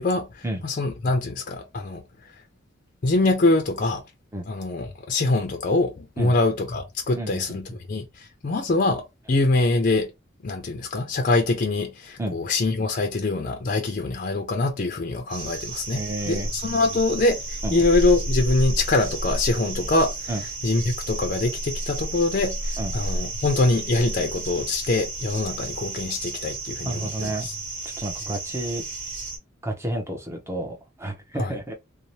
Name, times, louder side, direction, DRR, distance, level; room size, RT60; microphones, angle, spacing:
voice 1, 0.0-2.3 3.0-4.0 4.5-10.1 10.4-20.3 20.6-27.5 31.4-31.5, left 2 dB, 40° left, 0.4 m, -24 dB
voice 2, 7.2-7.6 12.2-12.4 15.9-16.5 17.6-17.8 20.3-20.4 22.8-22.9 26.9-27.5 28.0-28.8 29.6-31.7, right 1 dB, 15° right, 0.6 m, -30 dB
sound 1, 15.3-29.4, right 2 dB, 65° right, 1.2 m, -31 dB
2.7 x 2.0 x 2.9 m
head